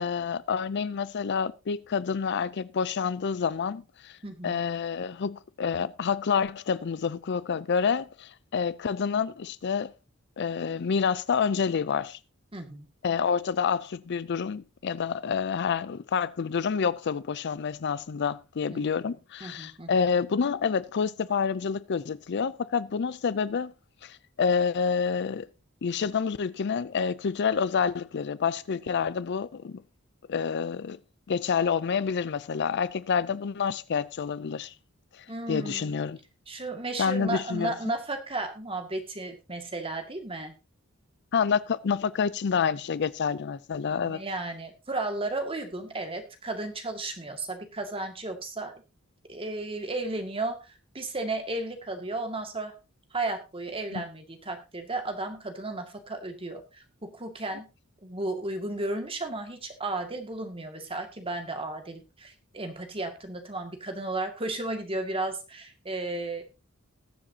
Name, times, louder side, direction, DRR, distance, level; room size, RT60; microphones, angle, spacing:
voice 1, 0.0-4.2 4.4-9.9 10.4-12.2 13.0-23.7 24.0-25.5 25.8-29.8 30.3-31.0 31.3-34.7 35.1-36.2 37.0-37.7 41.3-44.2 53.9-54.0, left 6 dB, 55° left, 0.4 m, -28 dB
voice 2, 4.2-4.6 12.5-12.9 18.7-18.8 19.4-20.0 35.3-35.9 36.5-40.5 44.0-48.7 49.3-52.7 53.1-57.7 58.0-66.4, right 2 dB, 25° right, 2.1 m, -34 dB
20.0 x 7.4 x 2.8 m
head